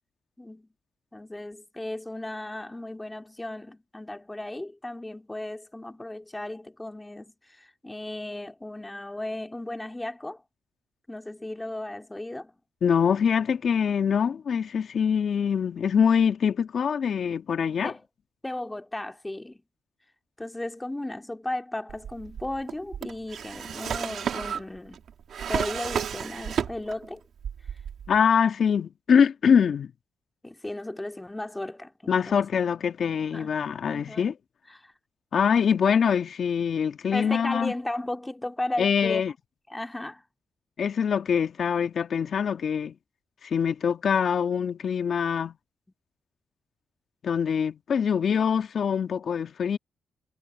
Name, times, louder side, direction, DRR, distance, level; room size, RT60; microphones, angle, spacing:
voice 1, 0.4-0.7 1.1-10.4 11.1-12.5 17.8-18.0 18.4-19.6 20.4-25.0 25.5-27.2 30.4-32.5 33.3-33.5 33.9-34.3 34.7-34.9 37.1-39.2 39.7-40.2, left 1 dB, 15° left, 2.4 m, -35 dB
voice 2, 12.8-17.9 28.1-29.9 32.1-34.3 35.3-37.7 38.8-39.3 40.8-42.9 43.4-45.5 47.2-49.8, left 7 dB, 60° left, 1.9 m, -24 dB
Drawer open or close, 21.9-27.1 27.4-28.2, right 8 dB, 70° right, 3.0 m, -32 dB
cardioid pair, 65°, 0 cm